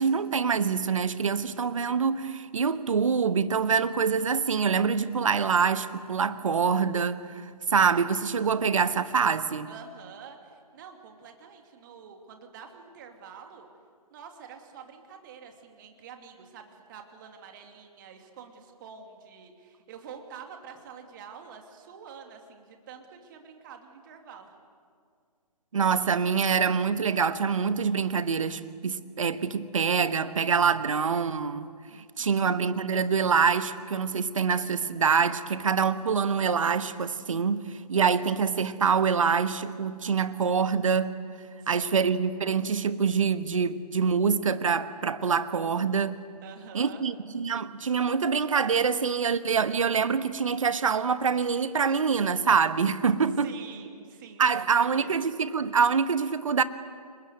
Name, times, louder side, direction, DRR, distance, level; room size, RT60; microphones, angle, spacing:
voice 1, 0.0-9.7 25.7-31.7 32.2-41.1 41.7-46.2 46.7-53.5 54.4-56.6, right 6 dB, 55° right, 1.2 m, -25 dB
voice 2, 9.7-13.7 14.1-24.6 31.9-32.6 41.6-42.1 46.4-47.0 53.4-55.1, right 6 dB, 30° right, 2.7 m, -47 dB
30.0 x 20.5 x 8.0 m
figure-of-eight pair, 140°, 20 cm